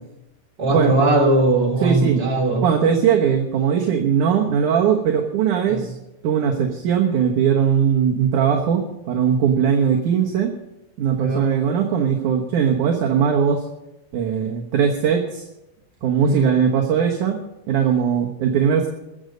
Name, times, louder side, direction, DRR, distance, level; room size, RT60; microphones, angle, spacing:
voice 1, 0.6-2.7 5.7-5.8 11.2-11.5 16.2-16.5, right 2 dB, 30° right, -2 dB, 4.3 m, -19 dB
voice 2, 1.8-2.2 2.6-5.9 6.2-10.5 11.0-13.6 14.1-15.5 16.0-17.4 17.7-18.9, right 7 dB, 65° right, 1 dB, 2.5 m, -19 dB
22.0 x 7.9 x 5.3 m, 0.92 s
omnidirectional pair, 4.3 m